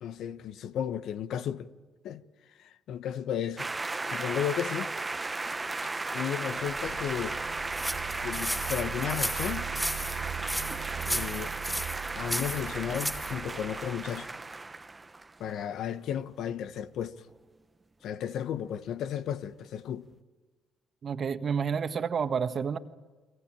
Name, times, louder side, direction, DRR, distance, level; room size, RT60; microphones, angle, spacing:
voice 1, 0.0-1.7 2.0-2.2 2.6-3.7 4.1-4.9 6.1-7.4 8.2-9.7 11.1-11.6 12.1-14.3 15.4-17.2 18.0-20.1, left 9 dB, 70° left, 1.1 m, -34 dB
sound 1, 3.6-15.6, right 3 dB, 20° right, 0.9 m, -35 dB
sound 2, 6.5-14.2, right 11 dB, 75° right, 1.1 m, -42 dB
sound 3, 7.7-13.3, equal, ahead, 3.2 m, -34 dB
voice 2, 21.0-22.8, right 6 dB, 50° right, 1.6 m, -29 dB
30.0 x 22.5 x 8.8 m
supercardioid pair, 75°, 0 cm